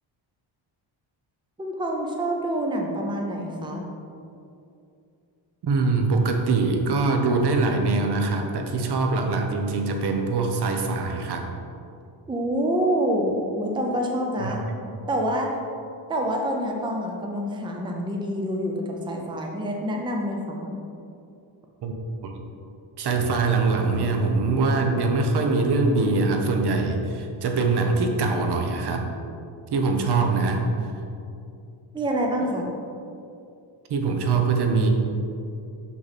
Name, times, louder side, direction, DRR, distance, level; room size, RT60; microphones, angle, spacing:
voice 1, 1.6-3.8 12.3-14.6 15.1-15.5 16.1-20.7 31.9-32.7, equal, 10° right, 1 dB, 0.6 m, -27 dB
voice 2, 5.6-11.4 14.4-14.5 21.8-21.9 22.2-22.3 23.0-29.0 29.7-30.6 33.9-34.9, right 3 dB, 55° right, 3 dB, 0.9 m, -23 dB
6.1 x 5.8 x 4.2 m, 2.6 s
wide cardioid pair, 155°, 47 cm